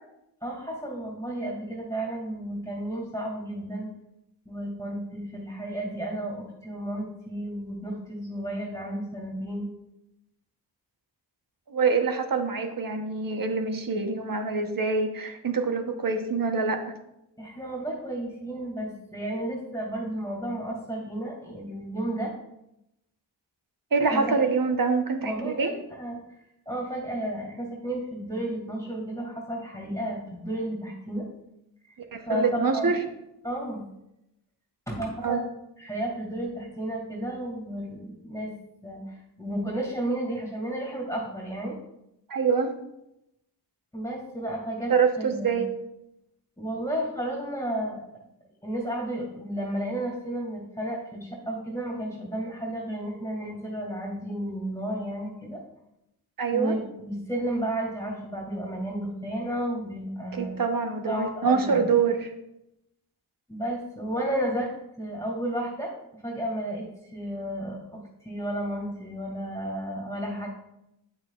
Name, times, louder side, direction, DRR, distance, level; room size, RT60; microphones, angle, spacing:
voice 1, 0.4-3.9 4.5-9.7 17.4-22.3 24.1-24.4 25.2-26.2 26.7-31.3 32.3-32.9 33.4-33.8 34.9-35.4 35.8-38.5 38.8-41.7 43.9-45.7 46.6-48.0 48.6-55.6 56.5-60.6 61.1-62.0 63.5-64.7 65.0-65.9 66.2-70.5, right 1 dB, 5° left, -2 dB, 2.3 m, -32 dB
voice 2, 11.7-16.9 23.9-25.7 32.1-33.0 35.2-35.4 42.3-42.7 44.9-45.7 56.4-56.7 60.3-62.3, right 5 dB, 50° right, 6 dB, 1.0 m, -25 dB
8.8 x 6.4 x 2.4 m, 0.85 s
cardioid pair, 60°, 42 cm